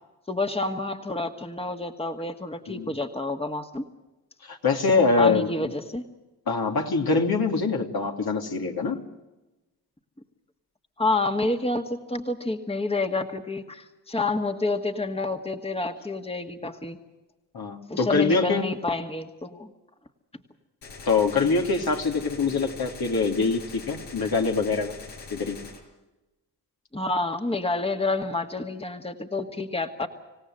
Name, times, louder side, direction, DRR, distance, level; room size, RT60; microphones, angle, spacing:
voice 1, 0.3-3.8 5.2-6.0 11.0-17.0 17.9-19.7 26.9-30.1, left 2 dB, 15° left, 6 dB, 2.0 m, -28 dB
voice 2, 4.4-5.5 6.5-9.0 17.5-18.7 21.1-25.0 25.3-25.6, left 4 dB, 55° left, 2 dB, 3.0 m, -24 dB
Gunshot gunfire, 20.8-25.8, left 3 dB, 75° left, 6.1 m, -43 dB
26.5 x 17.0 x 7.8 m, 1.1 s
supercardioid pair, 45°, 43 cm